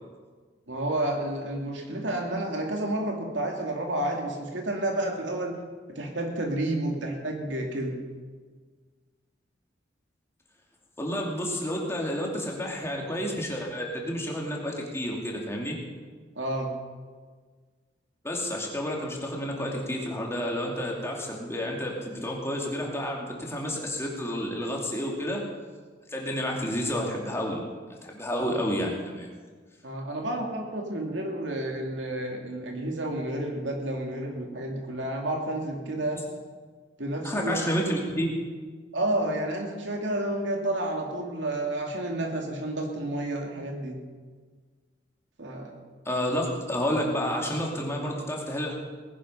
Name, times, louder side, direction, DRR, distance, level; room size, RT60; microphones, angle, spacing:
voice 1, 0.7-5.6 5.9-8.0 16.4-16.7 29.8-36.2 37.0-37.6 38.9-44.0 45.4-45.8, right 1 dB, 80° right, 1 dB, 2.5 m, -30 dB
voice 2, 11.0-15.8 18.2-25.4 26.1-27.6 28.0-29.3 37.2-38.3 46.0-48.7, equal, 15° left, -1 dB, 2.6 m, -30 dB
19.0 x 10.5 x 5.6 m, 1.5 s
head